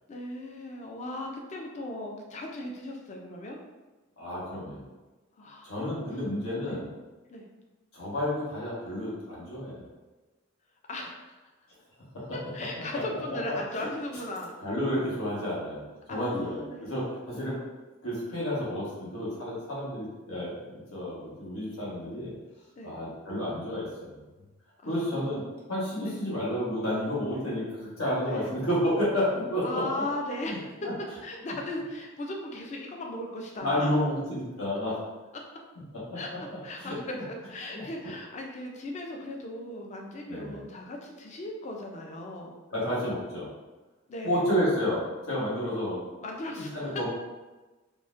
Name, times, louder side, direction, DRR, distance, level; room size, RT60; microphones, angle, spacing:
voice 1, 0.1-3.6 5.4-5.7 6.1-6.2 6.7-6.8 7.3-7.5 10.9-11.4 12.3-14.5 16.1-17.0 22.8-23.0 24.8-25.4 26.0-26.2 27.3-27.4 28.2-28.5 29.6-33.9 35.3-35.6 36.1-42.6 44.1-44.4 46.2-47.0, left 1 dB, 35° left, 1 dB, 0.3 m, -37 dB
voice 2, 4.2-4.9 5.6-6.9 7.9-9.8 12.9-13.0 14.6-17.6 18.0-22.3 22.8-24.2 24.8-25.4 25.7-30.0 30.4-30.9 33.6-35.0 36.1-36.2 36.8-36.9 37.7-37.8 40.3-40.6 42.7-43.5 44.2-45.0 45.3-46.0 46.7-47.1, equal, 80° left, -7 dB, 1.2 m, -30 dB
3.7 x 2.1 x 2.5 m, 1.2 s
head